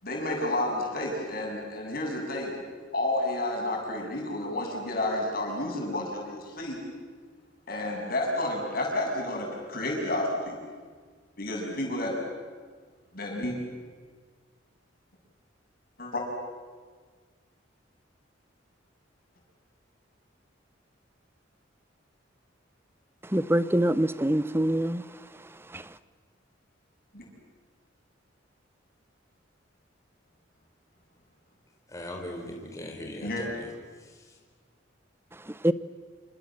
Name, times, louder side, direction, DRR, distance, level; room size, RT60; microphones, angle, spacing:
voice 1, 0.0-2.5 2.9-6.8 7.7-10.6 11.4-12.2 13.1-13.6 16.0-16.3 27.1-27.2 33.2-33.4, left 1 dB, 50° left, 7.8 m, -30 dB
voice 2, 23.3-25.0 25.7-25.8 35.6-35.7, right 1 dB, 10° right, 0.8 m, -24 dB
voice 3, 31.9-33.7 34.0-34.4, left 1 dB, 15° left, 4.2 m, -40 dB
28.0 x 27.0 x 7.6 m
head